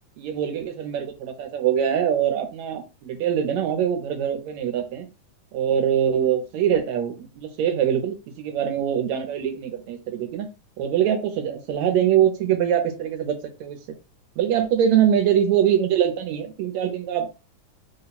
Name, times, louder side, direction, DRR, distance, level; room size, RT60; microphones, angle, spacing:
voice 1, 0.2-5.1 5.5-10.5 10.8-13.8 14.4-17.3, right 9 dB, 75° right, 5 dB, 2.1 m, -23 dB
4.7 x 2.3 x 4.0 m, 0.29 s
omnidirectional pair, 3.4 m